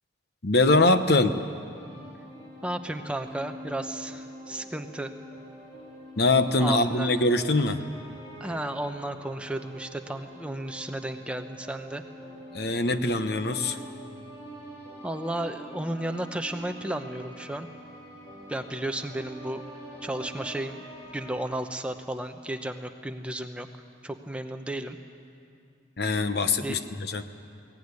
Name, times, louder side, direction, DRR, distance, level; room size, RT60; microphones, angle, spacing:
voice 1, 0.4-1.4 6.2-7.8 12.5-13.8 26.0-27.2, left 2 dB, 55° left, 10 dB, 1.0 m, -23 dB
sound 1, 1.7-21.4, equal, 25° left, 4.5 m, -44 dB
voice 2, 2.6-5.1 6.6-7.1 8.4-12.0 15.0-17.7 18.5-19.6 20.0-20.8 21.1-23.7 24.0-25.0 26.6-26.8, right 1 dB, 5° right, 6 dB, 0.9 m, -33 dB
22.0 x 17.5 x 9.7 m, 2.4 s
head